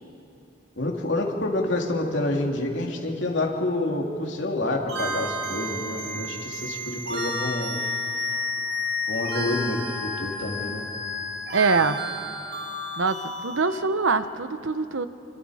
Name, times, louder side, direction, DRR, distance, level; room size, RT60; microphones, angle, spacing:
voice 1, 0.8-7.8 9.1-10.9, left 2 dB, 70° left, 0 dB, 2.8 m, -28 dB
sound 1, 4.9-13.6, left 2 dB, 55° right, 2.9 m, -31 dB
voice 2, 11.5-12.0 12.9-15.1, right 4 dB, 90° right, 11 dB, 0.9 m, -24 dB
27.5 x 24.5 x 5.0 m, 2.8 s
head